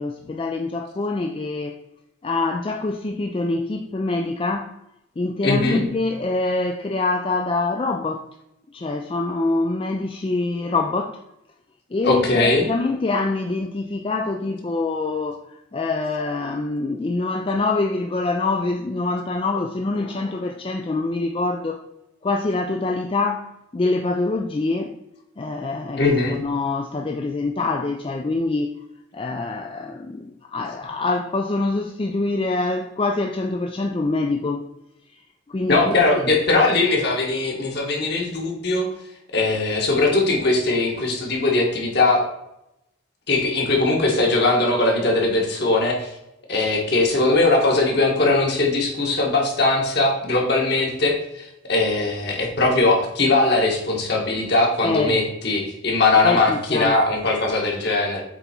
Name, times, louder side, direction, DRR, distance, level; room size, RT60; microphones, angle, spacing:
voice 1, 0.0-1.8 2.2-4.8 5.2-8.2 8.7-11.2 11.9-21.8 22.2-24.9 25.4-28.8 29.1-34.7 35.5-35.9 54.8-55.2 56.2-57.0, left 3 dB, 25° left, 4 dB, 0.3 m, -25 dB
voice 2, 5.4-5.8 12.0-12.7 26.0-26.4 35.7-38.9 39.3-42.2 43.3-46.1 46.5-58.2, left 2 dB, 55° left, 0 dB, 1.5 m, -20 dB
7.9 x 3.5 x 4.4 m, 0.85 s
head